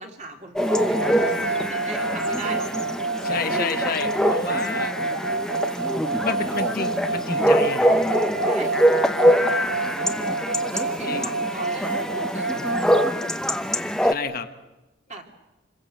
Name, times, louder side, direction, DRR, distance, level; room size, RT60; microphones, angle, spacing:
voice 1, 0.0-2.7 6.3-6.5 8.4-8.8 10.7-12.9 15.1-15.2, right 2 dB, 35° right, 3 dB, 3.0 m, -38 dB
Chatter / Bark / Livestock farm animals working animals, 0.6-14.1, equal, 5° left, 0.9 m, -24 dB
sound 1, 0.6-13.1, right 3 dB, 80° right, 1.3 m, -28 dB
voice 2, 3.2-4.9 6.1-8.0 11.0-11.3 12.5-12.7 13.7-14.5, left 4 dB, 45° left, 7 dB, 1.3 m, -30 dB
27.5 x 22.0 x 7.7 m, 1.0 s
head